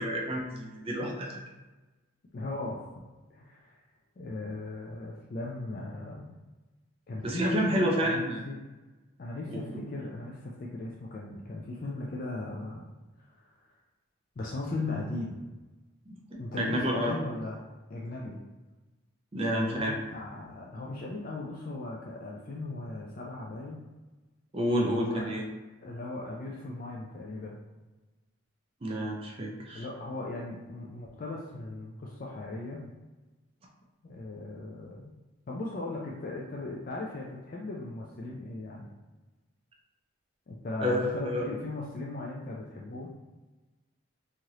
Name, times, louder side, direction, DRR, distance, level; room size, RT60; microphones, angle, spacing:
voice 1, 0.0-1.4 7.2-8.4 9.5-9.8 16.1-17.1 19.3-19.9 24.5-25.5 28.8-29.9 40.8-41.5, equal, 25° right, -1 dB, 0.4 m, -30 dB
voice 2, 2.3-2.8 3.3-3.7 4.2-6.3 7.1-8.6 9.2-12.8 13.2-13.6 14.4-15.4 16.4-17.6 17.9-18.4 19.5-23.8 24.7-25.4 25.8-27.6 29.7-32.9 34.0-35.0 35.5-38.9 40.5-43.1, left 2 dB, 40° left, -3 dB, 0.3 m, -37 dB
3.1 x 2.5 x 2.8 m, 1.2 s
head